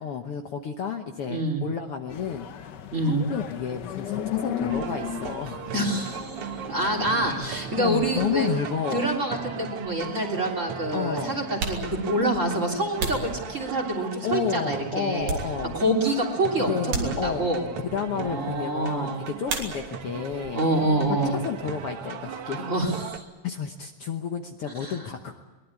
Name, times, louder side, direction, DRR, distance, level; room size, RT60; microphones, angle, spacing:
voice 1, 0.0-2.5 3.0-5.6 7.8-9.1 10.9-11.4 14.2-15.8 16.5-17.5 17.9-20.6 21.2-22.7 23.4-25.3, left 7 dB, 60° left, 4 dB, 1.9 m, -31 dB
voice 2, 1.3-1.6 2.9-3.2 5.7-8.5 8.9-15.3 15.7-17.6 18.1-19.2 20.5-21.3 22.6-23.2 24.8-25.0, right 1 dB, 25° right, 3 dB, 3.4 m, -26 dB
sound 1, 2.1-8.6, left 8 dB, 75° left, 0.9 m, -36 dB
sound 2, 4.7-23.2, right 8 dB, 60° right, 2.0 m, -37 dB
sound 3, 11.5-14.1 14.6-16.0 16.3-16.4 16.9-17.7 19.4-20.2 20.5-21.2 21.4-23.6, right 3 dB, 80° right, 4.5 m, -35 dB
23.0 x 20.0 x 8.5 m, 1.3 s
omnidirectional pair, 3.4 m